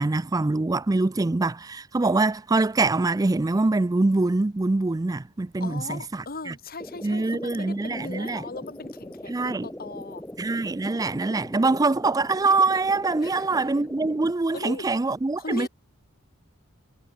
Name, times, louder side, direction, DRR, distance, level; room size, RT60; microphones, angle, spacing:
voice 1, 0.0-6.5 7.0-8.4 9.3-9.7 10.4-15.7, right 3 dB, 15° right, 0.4 m, -24 dB
voice 2, 5.6-10.2 13.2-13.4 14.5-14.9 15.4-15.7, left 3 dB, 45° left, 1.9 m, -38 dB
sound 1, 6.8-14.3, left 1 dB, 10° left, 1.4 m, -40 dB
head